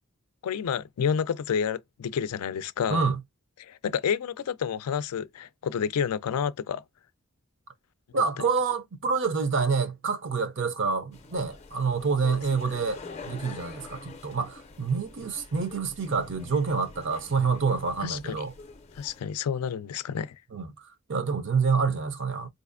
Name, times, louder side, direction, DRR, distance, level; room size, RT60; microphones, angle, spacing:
voice 1, 0.4-3.1 3.6-6.8 8.1-8.2 12.2-12.4 18.0-18.4 19.0-20.4, left 7 dB, 90° left, 0.4 m, -29 dB
voice 2, 8.1-18.5 20.5-22.5, right 5 dB, 55° right, 0.6 m, -27 dB
sound 1, 11.1-19.2, left 4 dB, 30° left, 0.5 m, -46 dB
4.0 x 2.5 x 2.5 m
head